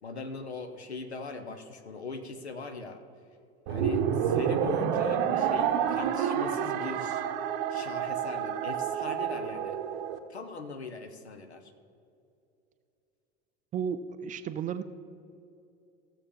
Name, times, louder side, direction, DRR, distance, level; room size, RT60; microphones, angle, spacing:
voice 1, 0.0-3.0 3.7-7.2 7.7-9.8 10.3-11.7, left 3 dB, 85° left, 8 dB, 0.8 m, -40 dB
sound 1, 3.7-10.2, right 8 dB, 55° right, 0.8 m, -29 dB
voice 2, 13.7-14.8, right 7 dB, 25° right, 10 dB, 0.4 m, -33 dB
15.0 x 7.1 x 3.6 m, 2.7 s
figure-of-eight pair, 70°, 32 cm